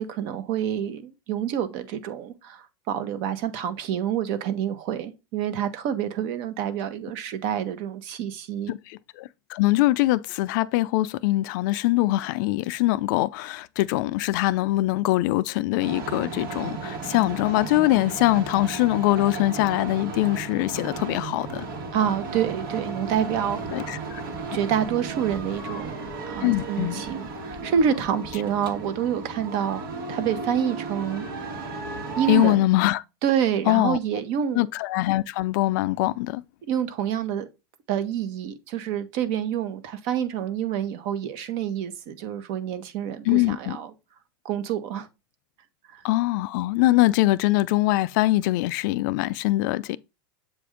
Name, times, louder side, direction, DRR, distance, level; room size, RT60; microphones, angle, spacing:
voice 1, 0.0-8.7 21.9-24.0 24.5-26.0 26.3-29.8 30.1-31.2 32.2-32.7 33.2-34.7 36.7-37.5 37.9-43.9 44.4-45.1 45.9-46.0, right 9 dB, 50° right, 0.9 m, -27 dB
voice 2, 8.7-21.7 23.7-24.2 26.4-27.0 32.3-33.0 33.7-34.0 34.5-36.4 43.3-43.8 46.0-50.0, left 18 dB, 60° left, 0.4 m, -23 dB
sound 1, 15.3-32.2, left 1 dB, 10° right, 1.3 m, -45 dB
sound 2, 15.8-32.5, right 4 dB, 80° right, 1.5 m, -35 dB
7.6 x 2.5 x 4.9 m
supercardioid pair, 140°, 12 cm